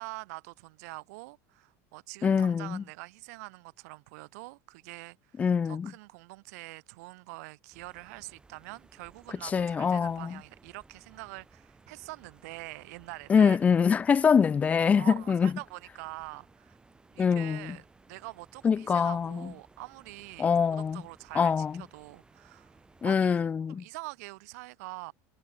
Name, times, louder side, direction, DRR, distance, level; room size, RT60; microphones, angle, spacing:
voice 1, 0.0-13.6 14.9-16.8 17.1-22.8 23.0-23.4 23.7-25.1, right 24 dB, 85° right, 1.4 m, -45 dB
voice 2, 2.2-2.8 5.4-5.9 9.5-10.3 13.3-15.5 17.2-17.8 18.6-19.5 20.4-21.0 21.4-21.8 23.0-23.8, left 6 dB, 15° left, 0.4 m, -24 dB
Very Quiet Forest Ambience, 7.7-23.1, right 3 dB, 10° right, 7.2 m, -59 dB
cardioid pair, 155°, 8 cm